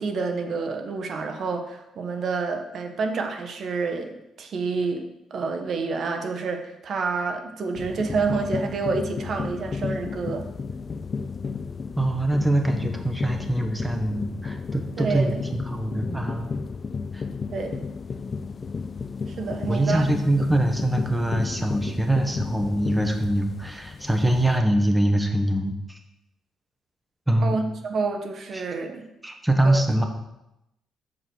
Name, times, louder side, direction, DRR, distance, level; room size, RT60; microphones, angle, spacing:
voice 1, 0.0-10.5 15.0-15.3 17.5-17.8 19.2-20.0 27.4-29.0 29.6-30.0, right 4 dB, 60° right, 5 dB, 1.3 m, -28 dB
sound 1, 7.7-24.6, left 5 dB, 40° left, 0.3 m, -33 dB
voice 2, 12.0-16.6 17.1-17.2 19.7-26.0 27.3-27.6 28.5-28.7 29.2-30.0, right 1 dB, 5° right, 4 dB, 1.3 m, -23 dB
7.0 x 5.4 x 6.5 m, 0.88 s
cardioid pair, 90°, 0 cm